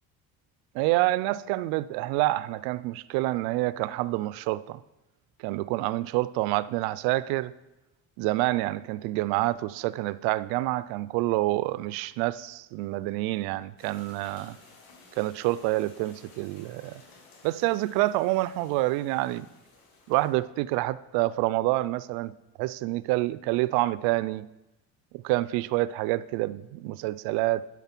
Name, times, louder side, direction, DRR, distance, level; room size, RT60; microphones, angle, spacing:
voice 1, 0.7-4.8 5.4-7.5 8.2-14.6 15.2-16.9 17.4-19.5 20.1-22.3 22.6-24.5 25.2-27.7, right 18 dB, 75° right, 0.5 m, -27 dB
sound 1, 13.8-20.3, left 3 dB, 55° left, 3.8 m, -55 dB
9.2 x 7.4 x 5.9 m
cardioid pair, 175°, 39 cm